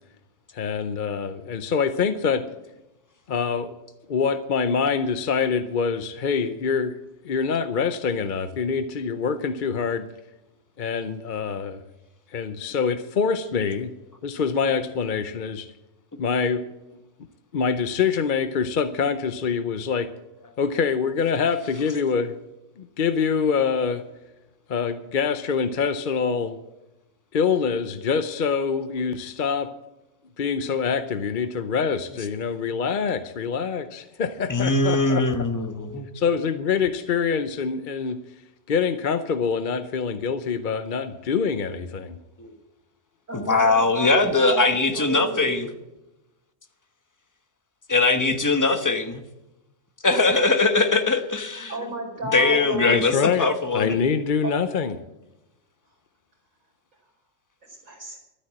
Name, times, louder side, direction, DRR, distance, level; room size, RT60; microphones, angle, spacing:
voice 1, 0.5-2.5 3.3-3.8 4.1-6.9 7.2-10.1 10.8-11.8 12.3-13.9 14.2-15.7 16.2-16.6 17.5-20.1 20.6-22.4 23.0-24.0 24.7-26.6 27.3-29.7 30.4-35.4 36.1-38.2 38.7-42.2 52.8-53.5 53.7-55.0, left 6 dB, 50° left, 10 dB, 0.8 m, -25 dB
voice 2, 34.5-36.1 42.4-42.5 43.3-45.6 47.9-49.2 50.0-51.7 52.3-54.0, left 3 dB, 15° left, 7 dB, 1.1 m, -21 dB
voice 3, 43.3-45.7 51.7-53.0 54.4-54.5 57.6-58.2, right 2 dB, 80° right, -1 dB, 5.3 m, -32 dB
12.5 x 9.9 x 7.6 m, 0.95 s
omnidirectional pair, 1.3 m